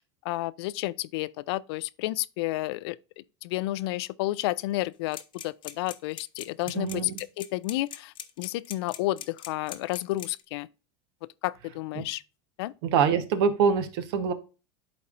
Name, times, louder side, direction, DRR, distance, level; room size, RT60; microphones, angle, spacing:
voice 1, 0.2-7.1 7.4-10.7 11.4-12.2 12.6-12.7, left 17 dB, 75° left, 0.4 m, -31 dB
sound 1, 5.1-10.4, left 10 dB, 40° left, 0.8 m, -40 dB
voice 2, 6.7-7.2 12.0-12.1 12.8-14.3, right 6 dB, 75° right, 1.1 m, -25 dB
11.0 x 4.2 x 2.5 m
supercardioid pair, 105°, 13 cm